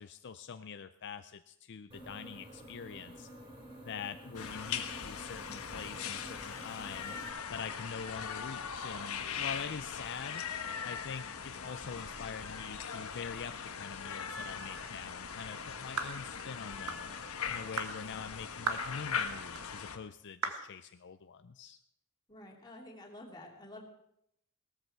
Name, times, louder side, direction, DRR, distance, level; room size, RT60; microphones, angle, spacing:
voice 1, 0.0-3.3 3.8-7.1 7.5-10.4 10.8-17.1 17.4-21.8, left 6 dB, 55° left, 10 dB, 0.5 m, -44 dB
sound 1, 1.9-7.3, right 1 dB, 25° right, 3.6 m, -50 dB
sound 2, 4.3-20.0, left 6 dB, 85° left, 1.2 m, -40 dB
sound 3, 16.0-16.2 16.9-17.1 17.8-18.0 18.7-18.9 19.5-19.7 20.4-20.7, right 4 dB, 90° right, 1.6 m, -35 dB
voice 2, 22.3-23.8, left 1 dB, 20° left, -1 dB, 3.0 m, -49 dB
17.5 x 13.5 x 4.6 m, 0.76 s
head